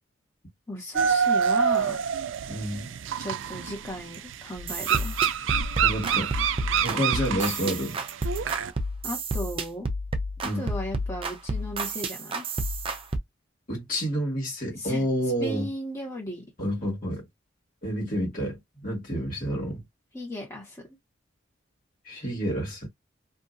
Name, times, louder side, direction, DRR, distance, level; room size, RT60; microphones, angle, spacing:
voice 1, 0.7-2.0 3.2-5.2 7.3-7.7 9.0-9.9 10.4-12.4 14.8-15.1 15.4-16.4 20.1-20.9, left 1 dB, 15° left, 1.3 m, -36 dB
sound 1, 0.9-8.7, right 7 dB, 85° right, 0.4 m, -27 dB
voice 2, 2.5-2.9 5.8-6.3 6.8-8.0 10.4-10.7 13.7-15.7 16.6-17.2 17.8-19.8 22.0-22.9, equal, 45° left, 1.6 m, -29 dB
sound 2, 4.6-13.2, right 1 dB, 30° right, 0.5 m, -30 dB
2.7 x 2.5 x 2.5 m
head